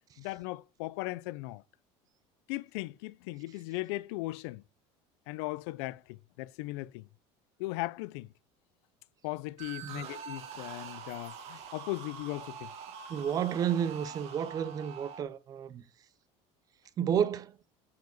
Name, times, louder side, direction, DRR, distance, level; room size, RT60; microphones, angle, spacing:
voice 1, 0.2-1.6 2.5-4.6 5.3-7.0 7.6-8.3 9.2-12.7, left 20 dB, 85° left, 0.4 m, -38 dB
sound 1, 9.6-15.2, right 7 dB, 50° right, 1.5 m, -45 dB
voice 2, 13.1-15.8 17.0-17.6, right 8 dB, 25° right, 0.5 m, -31 dB
9.4 x 4.8 x 3.9 m
cardioid pair, 165°, 13 cm